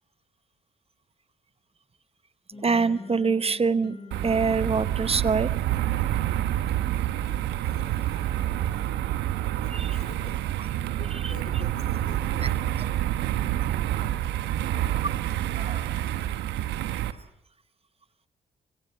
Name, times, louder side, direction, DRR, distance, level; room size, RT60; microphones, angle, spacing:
sound 1, 2.5-6.5, left 3 dB, 30° left, 3.3 m, -44 dB
voice 1, 2.6-4.0 4.2-5.5 9.7-10.0 11.0-11.3 12.4-12.5 15.5-15.9, right 5 dB, 35° right, 15 dB, 1.0 m, -25 dB
sound 2, 4.1-17.1, right 12 dB, 75° right, 1.1 m, -28 dB
voice 2, 7.3-8.8 9.6-10.4 11.0-12.8 14.6-14.9, left 4 dB, 65° left, 8 dB, 4.3 m, -47 dB
25.0 x 23.5 x 6.6 m, 0.80 s
hypercardioid pair, 45°, 18 cm